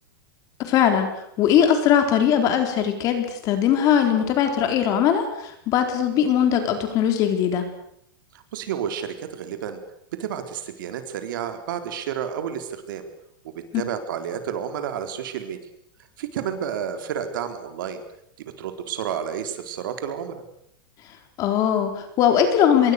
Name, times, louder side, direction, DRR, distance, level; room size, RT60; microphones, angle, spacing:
voice 1, 0.6-1.1 1.4-7.6 13.7-13.8 21.4-22.9, left 9 dB, 30° left, 6 dB, 4.1 m, -20 dB
voice 2, 8.3-9.8 10.2-13.0 13.4-15.6 16.2-18.0 18.4-20.4, right 8 dB, 65° right, 7 dB, 4.0 m, -31 dB
26.5 x 22.5 x 6.8 m, 0.74 s
supercardioid pair, 165°, 12 cm